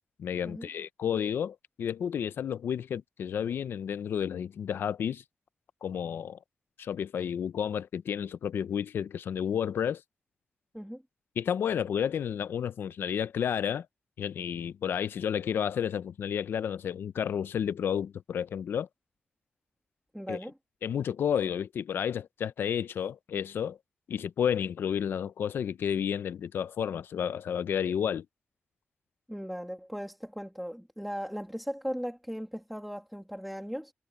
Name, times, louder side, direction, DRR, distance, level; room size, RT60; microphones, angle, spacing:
voice 1, 0.2-5.2 5.8-6.4 6.8-10.0 11.4-13.9 14.2-18.9 20.3-20.4 20.8-23.8 24.1-28.3, left 8 dB, 85° left, 0.6 m, -31 dB
voice 2, 20.1-20.5 29.3-33.9, equal, ahead, 2.2 m, -37 dB
wide cardioid pair, 165°, 4 cm